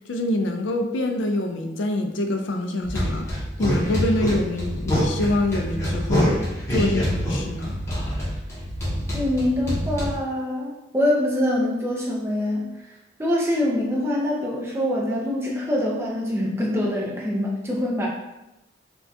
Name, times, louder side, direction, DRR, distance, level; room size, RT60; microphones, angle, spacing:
voice 1, 0.1-6.4 6.7-7.8, left 1 dB, 90° left, 5 dB, 0.4 m, -25 dB
sound 1, 2.8-10.1, equal, 15° left, 0.8 m, -26 dB
voice 2, 9.1-18.1, left 1 dB, 15° right, -3 dB, 0.5 m, -24 dB
4.2 x 2.3 x 2.7 m, 0.96 s
head